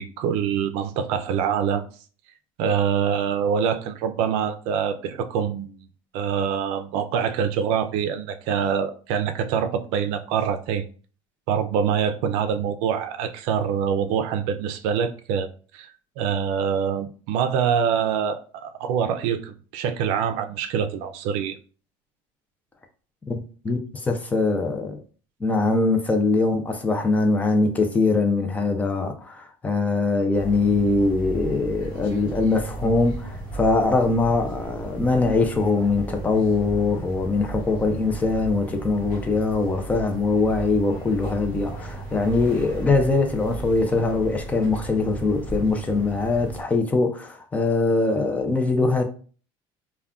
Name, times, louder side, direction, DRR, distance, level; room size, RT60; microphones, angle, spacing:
voice 1, 0.0-1.8 2.6-5.9 6.1-10.8 11.5-15.5 15.7-21.6, right 7 dB, 80° right, 0.4 m, -25 dB
voice 2, 23.6-25.0 25.4-49.0, left 3 dB, 15° left, 0.4 m, -22 dB
sound 1, 30.3-46.6, right 2 dB, 45° left, 1.2 m, -35 dB
2.3 x 2.2 x 3.5 m
cardioid pair, 150°, 10 cm